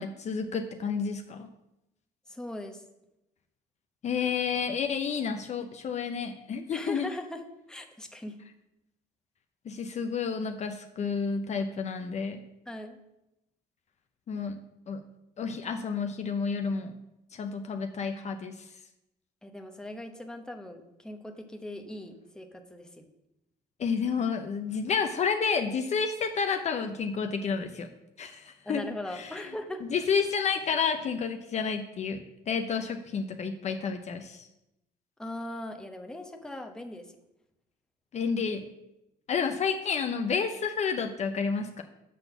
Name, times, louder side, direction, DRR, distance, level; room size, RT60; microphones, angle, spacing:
voice 1, 0.0-1.5 4.0-7.1 9.7-12.4 14.3-14.6 14.9-15.0 15.4-16.9 17.3-18.6 23.8-27.9 28.2-28.8 29.1-29.3 29.9-34.5 38.1-38.6 39.3-41.8, left 6 dB, 40° left, 6 dB, 0.6 m, -30 dB
voice 2, 2.3-2.8 6.7-7.4 7.7-8.4 12.7-13.0 19.4-23.1 28.6-29.8 35.2-37.1, left 1 dB, 5° left, 4 dB, 0.9 m, -39 dB
7.4 x 4.1 x 6.8 m, 0.90 s
cardioid pair, 110°, 17 cm